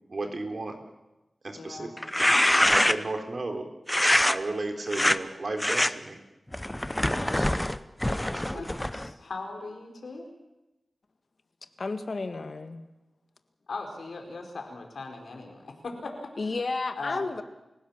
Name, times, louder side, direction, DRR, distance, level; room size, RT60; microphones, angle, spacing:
voice 1, 0.1-0.8 1.4-1.9 2.7-3.6 3.9-6.2 7.1-7.5 8.3-8.7, right 2 dB, 55° right, 5 dB, 3.7 m, -34 dB
voice 2, 1.5-1.9 8.5-10.3 13.7-16.3 17.0-17.3, left 3 dB, 85° left, 3 dB, 4.7 m, -39 dB
sound 1, 2.0-3.2 3.9-4.4 4.9-5.2 5.6-5.9 6.5-9.1, left 1 dB, 15° left, 0.9 m, -24 dB
voice 3, 11.8-12.8 16.4-17.4, left 3 dB, 60° left, 9 dB, 1.6 m, -32 dB
29.5 x 16.5 x 7.4 m, 0.98 s
wide cardioid pair, 65°, 0 cm